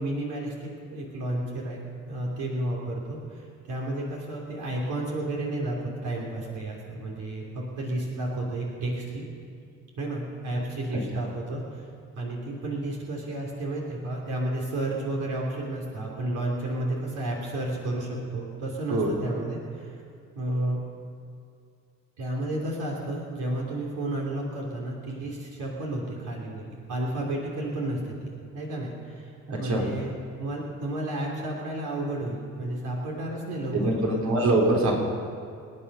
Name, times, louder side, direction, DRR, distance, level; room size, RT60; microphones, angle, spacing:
voice 1, 0.0-1.8 2.1-9.2 10.0-11.9 12.1-20.0 20.3-20.8 22.2-28.1 28.5-30.1 30.4-34.3, right 1 dB, 85° right, -3 dB, 3.5 m, -32 dB
voice 2, 29.5-29.8 33.7-35.0, right 2 dB, 65° right, -1 dB, 3.6 m, -23 dB
26.5 x 9.8 x 5.6 m, 2.4 s
cardioid pair, 90°, 30 cm